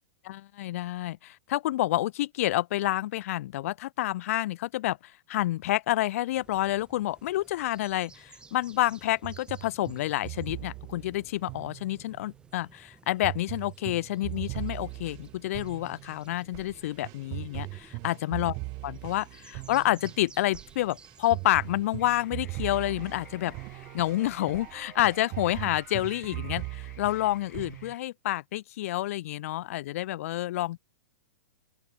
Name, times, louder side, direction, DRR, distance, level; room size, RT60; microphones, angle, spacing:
voice 1, 0.2-18.6 18.8-23.6 23.9-30.8, left 15 dB, 55° left, 0.4 m, -29 dB
sound 1, 6.4-24.7, right 4 dB, 10° right, 3.4 m, -56 dB
sound 2, 9.2-12.3 13.2-27.9, right 28 dB, 40° right, 3.1 m, -40 dB
sound 3, 22.0-28.0, left 10 dB, 75° left, 3.6 m, -55 dB
open air
hypercardioid pair, 140°, 9 cm